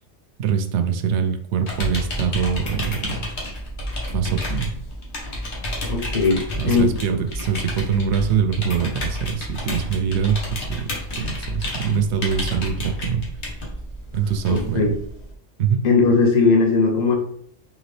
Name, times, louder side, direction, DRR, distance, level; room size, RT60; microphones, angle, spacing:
voice 1, 0.4-3.3 4.1-4.7 6.5-10.9 11.2-13.2 14.1-14.9 15.6-15.9, right 7 dB, 70° right, 7 dB, 0.8 m, -23 dB
sound 1, 1.7-15.3, left 1 dB, 60° left, 1.3 m, -30 dB
voice 2, 5.9-6.9 14.5-14.9 15.8-17.1, left 4 dB, 40° left, 1 dB, 0.8 m, -18 dB
3.9 x 3.3 x 3.2 m, 0.64 s
omnidirectional pair, 1.3 m